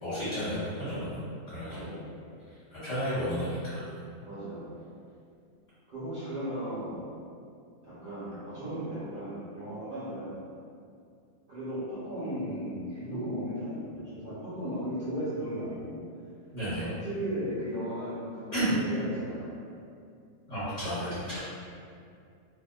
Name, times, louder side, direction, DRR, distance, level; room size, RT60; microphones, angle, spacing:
voice 1, 0.0-1.2 1.5-1.9 2.7-3.8 16.5-16.9 18.5-18.7 20.5-21.5, equal, 50° left, -14 dB, 1.2 m, -32 dB
voice 2, 1.7-2.0 3.1-3.3 4.2-4.7 5.9-7.0 7.8-10.4 11.5-16.0 16.7-19.5, equal, 45° right, -14 dB, 0.7 m, -36 dB
2.6 x 2.1 x 2.2 m, 2.4 s
omnidirectional pair, 1.5 m